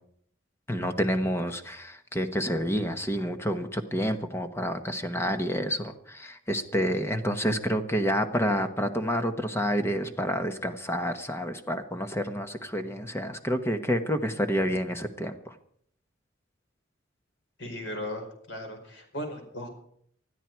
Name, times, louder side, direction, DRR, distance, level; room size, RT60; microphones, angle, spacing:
voice 1, 0.7-15.5, equal, 15° left, 7 dB, 1.2 m, -29 dB
voice 2, 17.6-19.7, left 1 dB, 65° left, 3 dB, 4.7 m, -37 dB
20.5 x 13.0 x 4.6 m, 0.66 s
head